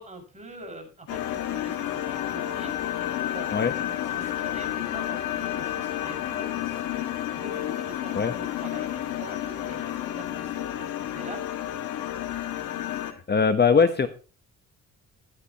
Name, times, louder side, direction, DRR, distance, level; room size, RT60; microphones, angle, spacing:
voice 1, 0.0-11.6, right 1 dB, 25° right, 4 dB, 6.0 m, -45 dB
sound 1, 1.1-13.1, left 11 dB, 90° left, 1.6 m, -31 dB
voice 2, 13.1-14.1, left 5 dB, 35° left, 9 dB, 1.1 m, -21 dB
15.0 x 10.5 x 3.0 m, 0.37 s
cardioid pair, 90°, 30 cm